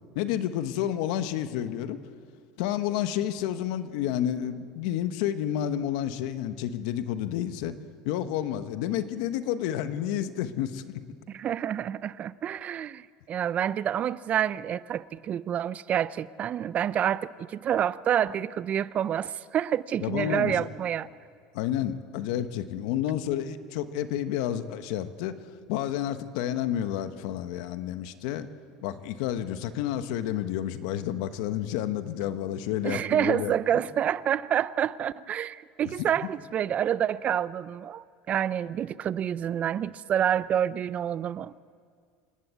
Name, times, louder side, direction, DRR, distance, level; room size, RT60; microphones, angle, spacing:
voice 1, 0.1-2.0 2.6-7.7 8.0-10.8 20.0-20.7 21.5-25.3 25.7-28.5 28.8-33.5, left 11 dB, 75° left, 1.2 m, -30 dB
voice 2, 11.3-21.1 32.8-41.5, right 10 dB, 40° right, 0.5 m, -28 dB
27.0 x 11.5 x 8.4 m
supercardioid pair, 115°, 4 cm